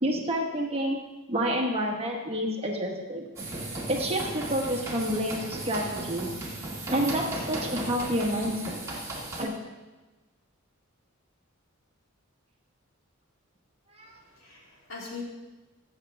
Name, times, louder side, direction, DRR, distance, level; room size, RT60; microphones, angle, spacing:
voice 1, 0.0-1.0 1.3-3.3 3.9-6.3 6.9-8.8 9.4-9.5 14.0-14.1, equal, 30° right, 0 dB, 1.3 m, -29 dB
sound 1, 3.4-9.4, right 2 dB, 15° right, 2.1 m, -35 dB
voice 2, 14.0-15.2, left 4 dB, 75° left, -3 dB, 2.8 m, -42 dB
15.0 x 7.3 x 3.5 m, 1.2 s
head